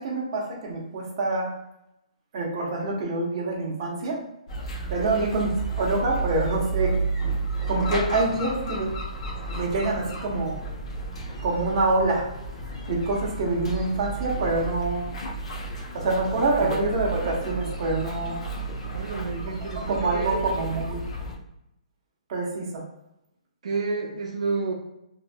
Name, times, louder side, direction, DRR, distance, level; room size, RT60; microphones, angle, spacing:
voice 1, 0.0-1.5 2.3-4.2 4.9-5.5 5.8-7.0 7.7-8.9 9.5-10.6 11.4-12.3 12.9-15.0 15.9-18.4 19.7-21.0 22.3-22.8, right 2 dB, 35° right, -2 dB, 0.8 m, -26 dB
sound 1, 4.5-21.4, right 3 dB, 50° left, 0.7 m, -32 dB
voice 2, 18.9-20.4 23.6-24.7, right 4 dB, 65° right, -2 dB, 0.6 m, -30 dB
2.9 x 2.6 x 2.2 m, 0.84 s
hypercardioid pair, 160°, 4 cm